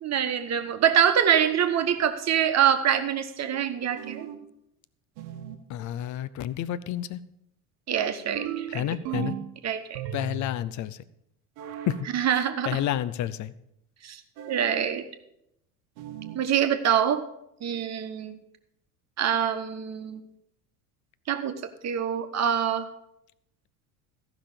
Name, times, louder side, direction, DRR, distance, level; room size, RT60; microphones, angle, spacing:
voice 1, 0.0-4.3 7.9-8.9 9.6-10.0 12.1-12.8 14.0-14.2 14.5-15.0 16.3-17.3 17.6-18.3 19.2-20.2 21.3-21.5 21.8-22.9, right 9 dB, 35° right, 8 dB, 1.3 m, -25 dB
sound 1, 4.0-4.5 5.2-5.7 8.4-9.5 9.9-10.6 11.6-12.1 14.4-14.9 16.0-16.5, right 8 dB, 60° right, 1.2 m, -36 dB
voice 2, 5.7-7.2 8.7-9.4 10.1-11.0 11.9-12.1 12.6-13.5, left 11 dB, 40° left, 17 dB, 0.7 m, -30 dB
14.5 x 6.0 x 6.7 m, 0.79 s
hypercardioid pair, 75°, 45 cm